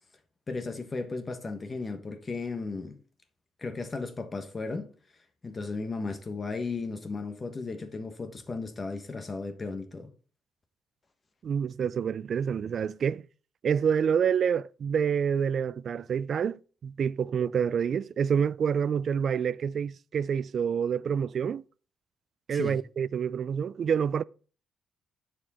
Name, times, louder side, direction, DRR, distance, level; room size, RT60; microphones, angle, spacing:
voice 1, 0.5-3.0 3.6-4.9 5.4-10.1 22.5-22.8, left 3 dB, 30° left, 1.2 m, -35 dB
voice 2, 11.4-13.2 13.6-21.6 22.5-24.2, right 7 dB, 55° right, 0.3 m, -27 dB
10.0 x 4.7 x 4.2 m
cardioid pair, 90°, 0 cm